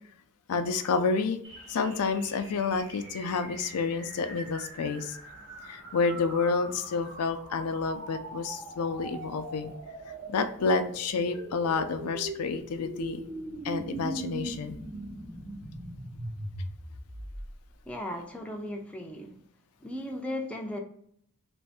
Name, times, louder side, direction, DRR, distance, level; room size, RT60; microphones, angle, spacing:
voice 1, 0.5-1.4 1.7-5.2 5.6-9.7 10.3-13.2 13.6-14.8, left 4 dB, 85° left, 8 dB, 0.4 m, -29 dB
sound 1, 1.4-17.7, right 1 dB, 60° right, 1.1 m, -41 dB
voice 2, 17.9-19.3 19.8-20.8, left 1 dB, 5° left, 2 dB, 0.4 m, -36 dB
3.1 x 2.6 x 3.4 m, 0.63 s
head